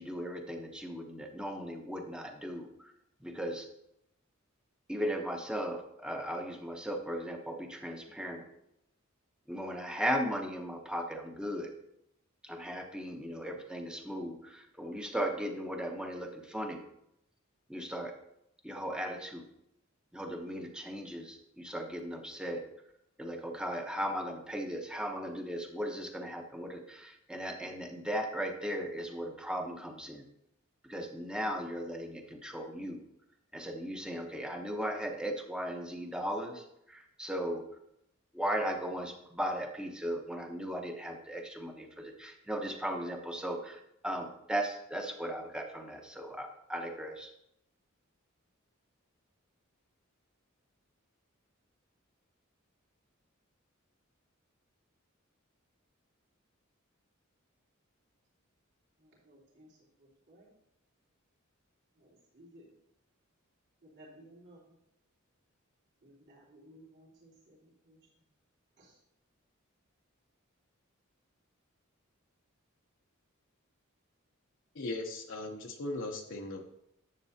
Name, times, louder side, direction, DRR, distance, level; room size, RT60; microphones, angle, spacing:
voice 1, 0.0-2.9 3.2-3.7 4.9-8.5 9.5-11.7 12.4-16.8 17.7-18.1 18.6-19.5 20.1-22.6 23.2-30.3 30.8-33.0 33.5-37.6 38.3-47.3, equal, 5° right, 3 dB, 0.9 m, -37 dB
voice 2, 59.0-60.5 61.9-62.7 63.8-64.8 66.0-68.0 68.8-69.0, right 1 dB, 55° right, -6 dB, 3.1 m, -58 dB
voice 3, 74.7-76.6, left 2 dB, 65° left, 1 dB, 0.8 m, -38 dB
10.5 x 7.4 x 2.8 m, 0.79 s
head